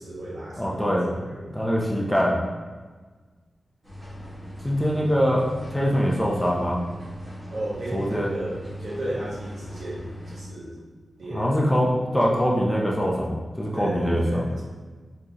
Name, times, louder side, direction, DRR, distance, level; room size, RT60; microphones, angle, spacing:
voice 1, 0.0-1.5 7.5-10.8 11.2-11.7 13.7-14.6, right 1 dB, 60° right, -5 dB, 1.1 m, -34 dB
voice 2, 0.6-2.3 4.6-6.8 7.9-8.3 11.3-14.5, equal, 5° left, -4 dB, 0.5 m, -23 dB
sound 1, 3.8-10.4, equal, 10° right, 1.4 m, -39 dB
4.5 x 3.1 x 2.8 m, 1.4 s
wide cardioid pair, 145°, 0 cm